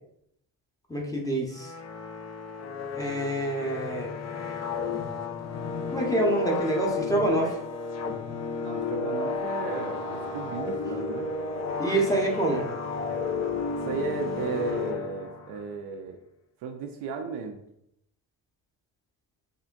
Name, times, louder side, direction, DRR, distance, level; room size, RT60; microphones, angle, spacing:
voice 1, 0.9-1.7 2.9-4.1 5.9-7.6 11.8-12.7, right 1 dB, 5° left, -2 dB, 0.8 m, -26 dB
sound 1, 1.5-15.6, left 4 dB, 35° left, 0.5 m, -33 dB
voice 2, 8.6-11.3 13.8-16.2 16.6-17.6, right 4 dB, 55° right, 5 dB, 0.5 m, -34 dB
3.5 x 2.1 x 2.5 m, 0.76 s
hypercardioid pair, 45°, 49 cm